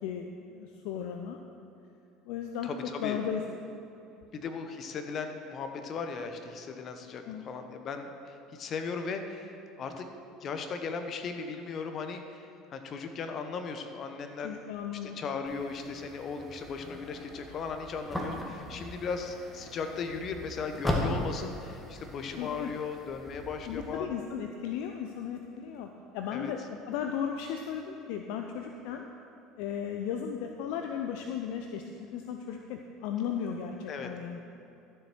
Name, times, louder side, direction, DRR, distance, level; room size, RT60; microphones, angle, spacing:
voice 1, 0.0-1.4 2.2-2.7 3.0-3.4 7.2-7.4 14.4-15.2 22.4-22.7 23.7-25.9 26.1-29.1 29.6-34.4, left 8 dB, 60° left, 4 dB, 0.5 m, -35 dB
voice 2, 4.3-10.1 10.4-14.5 15.0-24.1 26.3-26.5 33.9-34.1, left 5 dB, 45° left, 6 dB, 1.0 m, -37 dB
sound 1, 15.5-24.0, left 1 dB, 5° left, 1.7 m, -38 dB
12.5 x 7.3 x 4.5 m, 2.8 s
figure-of-eight pair, 65°, 0 cm